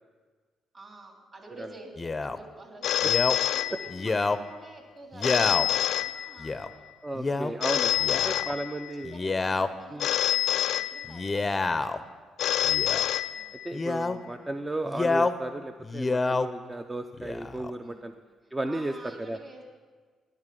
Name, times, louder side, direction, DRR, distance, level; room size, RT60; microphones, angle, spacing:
voice 1, 0.7-6.9 7.2-8.8 9.1-11.9 13.3-13.7 17.8-18.1 18.7-19.6, right 2 dB, 40° right, 1 dB, 2.8 m, -49 dB
Male speech man speaking, 2.0-2.4 3.0-3.4 3.9-4.4 5.1-5.7 6.4-6.7 7.1-7.5 8.0-8.5 9.0-9.7 11.0-12.0 12.6-13.1 13.7-14.2 14.8-15.3 15.8-16.5 17.1-17.7, left 3 dB, 25° left, 0.6 m, -28 dB
Telephone, 2.8-4.3 5.2-6.7 7.6-9.1 10.0-11.5 12.4-13.9, left 12 dB, 75° left, 0.3 m, -27 dB
voice 2, 7.0-9.1 9.9-10.1 12.6-13.1 13.6-18.1 18.5-19.4, right 1 dB, 15° right, 6 dB, 0.6 m, -34 dB
13.0 x 10.0 x 5.3 m, 1.5 s
cardioid pair, 90°, 0 cm